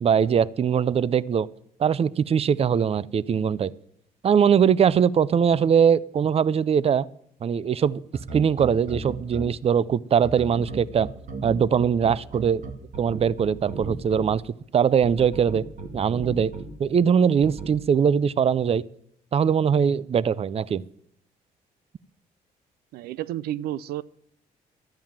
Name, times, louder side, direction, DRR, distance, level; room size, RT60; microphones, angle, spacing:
voice 1, 0.0-1.5 1.8-3.7 4.2-7.1 7.4-8.0 8.3-11.1 11.4-12.6 13.0-15.6 15.9-16.5 16.8-18.8 19.3-20.8, right 7 dB, 40° right, 22 dB, 0.5 m, -21 dB
sound 1, 8.1-9.4 10.2-14.2 15.0-16.6 17.4-17.7, right 4 dB, 55° right, 2.1 m, -35 dB
voice 2, 22.9-24.0, right 13 dB, 90° right, 21 dB, 0.4 m, -31 dB
12.5 x 9.0 x 7.3 m, 0.69 s
cardioid pair, 80°, 16 cm